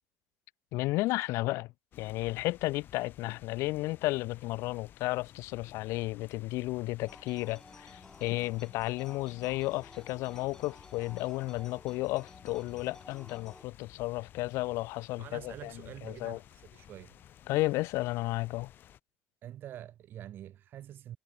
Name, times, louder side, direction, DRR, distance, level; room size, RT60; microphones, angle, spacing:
voice 1, 0.7-1.7 2.0-15.7 16.0-16.4 17.5-18.7, left 20 dB, 70° left, 1.2 m, -33 dB
sound 1, 1.9-19.0, left 11 dB, 45° left, 7.8 m, -55 dB
sound 2, 7.0-13.7, left 2 dB, 10° left, 2.0 m, -54 dB
voice 2, 15.2-17.2 19.4-21.2, right 11 dB, 45° right, 1.5 m, -46 dB
cardioid pair, 155°, 5 cm